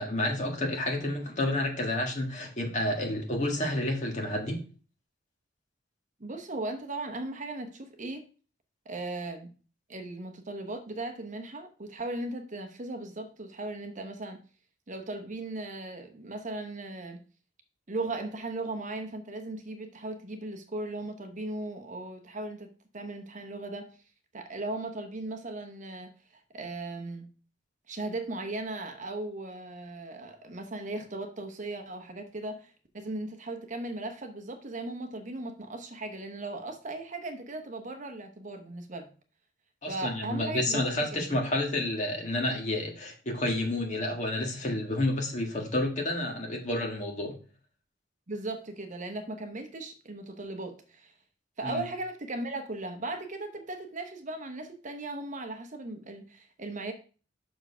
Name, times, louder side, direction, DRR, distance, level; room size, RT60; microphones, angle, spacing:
voice 1, 0.0-4.6 39.8-47.4 51.6-51.8, left 1 dB, 40° left, 1.8 m, -30 dB
voice 2, 6.2-8.2 8.8-9.5 9.9-14.4 14.9-17.2 17.9-24.0 24.3-26.1 26.5-27.3 27.9-39.1 39.9-40.8 41.1-41.4 48.3-51.1 51.6-56.9, right 2 dB, 45° right, 1.0 m, -37 dB
6.1 x 4.5 x 5.6 m
head